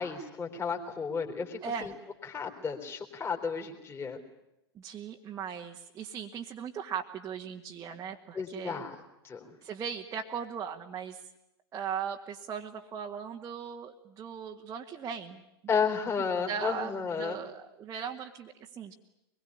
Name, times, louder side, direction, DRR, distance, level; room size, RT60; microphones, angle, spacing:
voice 1, 0.0-1.9 2.2-4.2 8.3-8.9 9.2-9.5 15.7-17.4, left 5 dB, 15° left, 1 dB, 3.8 m, -33 dB
voice 2, 1.6-1.9 4.8-8.8 9.6-11.2 11.7-15.4 16.5-18.9, right 7 dB, 20° right, 0 dB, 1.7 m, -38 dB
24.5 x 22.0 x 9.9 m, 0.91 s
figure-of-eight pair, 95°, 14 cm